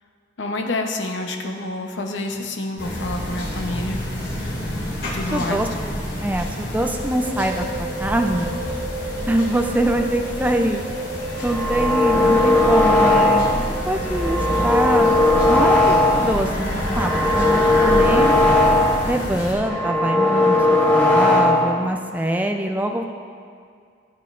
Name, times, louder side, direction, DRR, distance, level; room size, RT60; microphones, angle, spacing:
voice 1, 0.4-4.0 5.0-5.6 12.1-12.5, left 2 dB, 75° left, 3 dB, 0.8 m, -28 dB
sound 1, 2.8-19.5, equal, 55° left, 2.4 m, -28 dB
voice 2, 5.3-8.5 9.3-10.8 11.4-15.1 15.5-16.5 16.9-18.3 19.0-23.0, right 1 dB, 10° right, 3 dB, 0.4 m, -24 dB
sound 2, 6.9-15.7, right 2 dB, 70° right, 2.4 m, -32 dB
sound 3, 11.3-13.7 14.0-16.4 16.7-19.1 19.4-21.8, left 2 dB, 10° left, 0.8 m, -18 dB
15.0 x 7.8 x 2.5 m, 2.2 s
head